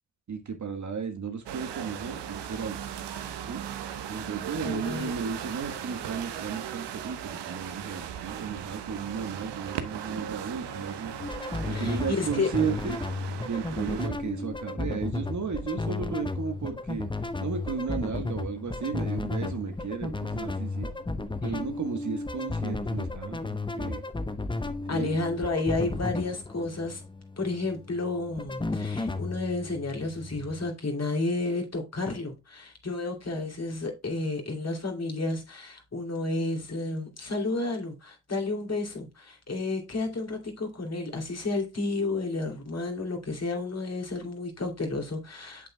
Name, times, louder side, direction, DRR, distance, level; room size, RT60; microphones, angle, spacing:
voice 1, 0.3-2.8 3.5-3.6 4.1-11.1 11.7-13.0 13.4-17.1 17.4-20.9 21.4-24.0 24.9-25.2, right 5 dB, 40° right, 1.5 m, -34 dB
sound 1, 1.5-14.1, right 9 dB, 60° right, 1.2 m, -38 dB
voice 2, 4.6-5.1 11.7-12.5 24.9-27.0 27.4-45.7, left 2 dB, 35° left, 2.8 m, -31 dB
sound 2, 11.2-30.7, left 2 dB, 10° left, 0.8 m, -34 dB
8.6 x 6.9 x 2.2 m
hypercardioid pair, 55°, 47 cm